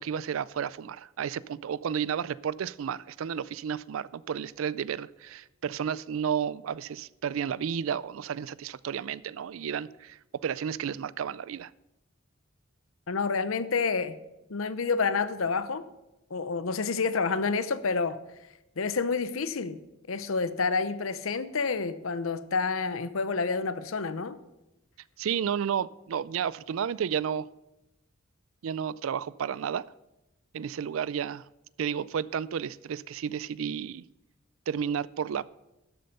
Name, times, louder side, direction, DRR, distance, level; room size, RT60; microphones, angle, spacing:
voice 1, 0.0-11.7 25.2-27.5 28.6-29.9 30.5-31.4 31.8-34.0 34.7-35.5, right 8 dB, 75° right, 0.4 m, -32 dB
voice 2, 13.1-14.2 14.5-15.8 16.3-18.2 18.8-19.8 20.1-24.4, left 4 dB, 80° left, 0.7 m, -29 dB
12.0 x 7.8 x 5.4 m
head